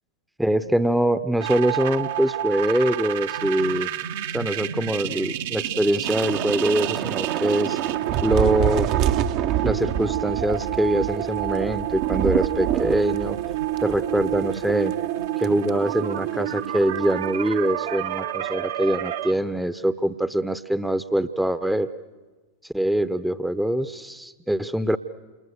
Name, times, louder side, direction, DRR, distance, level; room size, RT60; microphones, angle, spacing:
voice 1, 0.4-3.9 4.3-7.8 8.2-8.9 9.6-13.4 13.8-14.9 15.4-21.9 22.7-25.0, right 1 dB, 5° right, 13 dB, 0.9 m, -23 dB
sound 1, 1.4-19.3, right 12 dB, 55° right, 1.1 m, -29 dB
Thunder / Rain, 6.0-14.6 14.9-15.1 15.4-15.7, right 11 dB, 40° right, 0.9 m, -27 dB
29.0 x 28.0 x 6.8 m, 1.3 s
figure-of-eight pair, 90°, 0 cm